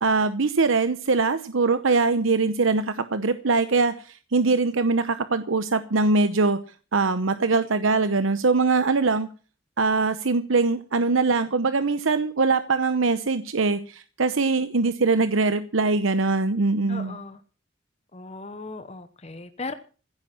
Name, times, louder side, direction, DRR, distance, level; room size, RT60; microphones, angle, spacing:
voice 1, 0.0-6.6 6.9-9.3 9.8-17.2, right 3 dB, 85° right, 11 dB, 0.9 m, -22 dB
voice 2, 16.9-17.4 18.1-19.7, left 3 dB, 30° left, 10 dB, 0.9 m, -37 dB
15.5 x 8.8 x 7.5 m, 0.38 s
head